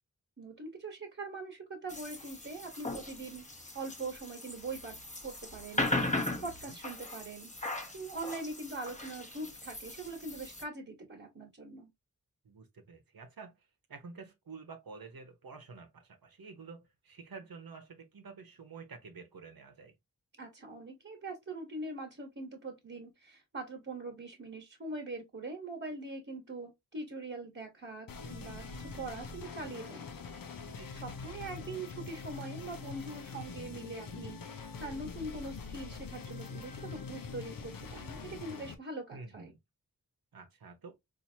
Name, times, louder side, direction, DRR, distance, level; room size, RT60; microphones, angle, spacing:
voice 1, 0.4-3.5 3.7-5.0 5.2-7.5 7.9-11.9 20.4-30.1 31.0-39.5, right 2 dB, 40° right, 1.3 m, -42 dB
sound 1, 1.9-10.6, left 2 dB, 20° left, 0.9 m, -38 dB
voice 2, 6.4-6.7 12.4-19.9 30.7-30.9 39.1-39.6 40.3-40.9, right 4 dB, 85° right, 0.9 m, -50 dB
sound 2, 28.1-38.7, left 4 dB, 70° left, 0.6 m, -44 dB
4.3 x 2.6 x 2.7 m
wide cardioid pair, 85°, 35 cm